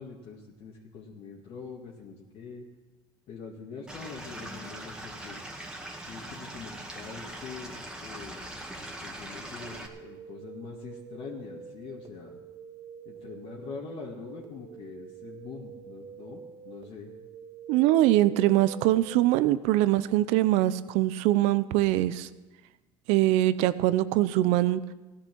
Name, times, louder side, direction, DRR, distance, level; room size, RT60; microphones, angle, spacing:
voice 1, 0.0-2.7 3.3-5.4 6.1-8.4 8.8-12.4 13.1-17.1, left 5 dB, 60° left, -3 dB, 2.2 m, -44 dB
Stream / Liquid, 3.9-9.9, right 1 dB, 5° right, 2.0 m, -41 dB
sound 1, 9.7-19.2, right 6 dB, 45° right, 1.5 m, -47 dB
voice 2, 17.7-22.3 23.1-24.8, right 15 dB, 80° right, 15 dB, 0.7 m, -23 dB
16.0 x 11.5 x 6.2 m, 1.1 s
supercardioid pair, 105°, 11 cm